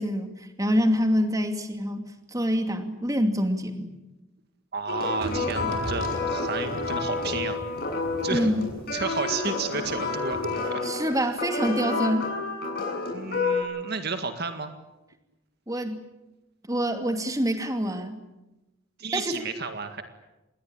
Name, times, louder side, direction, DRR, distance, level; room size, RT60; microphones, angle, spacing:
voice 1, 0.0-3.9 8.3-8.7 10.8-12.3 15.7-16.0 16.7-18.2 19.1-19.4, equal, 15° right, 6 dB, 2.6 m, -26 dB
voice 2, 4.7-7.6 8.2-8.5 8.9-10.8 13.1-14.7 19.0-20.0, right 4 dB, 50° right, 8 dB, 1.9 m, -32 dB
sound 1, 4.9-13.6, left 3 dB, 50° left, 7.0 m, -29 dB
sound 2, 5.2-10.0 10.3-10.5, right 1 dB, 80° right, 6.0 m, -37 dB
28.0 x 21.5 x 8.8 m, 1.0 s
head